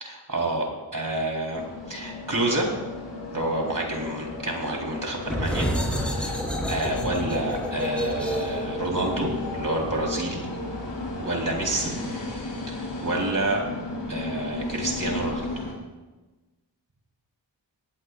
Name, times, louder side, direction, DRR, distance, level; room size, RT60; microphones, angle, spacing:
voice 1, 0.0-2.7 3.3-10.5 11.2-11.9 12.7-13.6 14.1-15.7, right 1 dB, 45° right, -1 dB, 4.0 m, -29 dB
sound 1, 1.5-15.7, left 2 dB, 70° left, 3.8 m, -34 dB
sound 2, 5.2-10.6, right 1 dB, 5° left, 3.6 m, -30 dB
18.0 x 16.0 x 2.5 m, 1.2 s
cardioid pair, 45°, 44 cm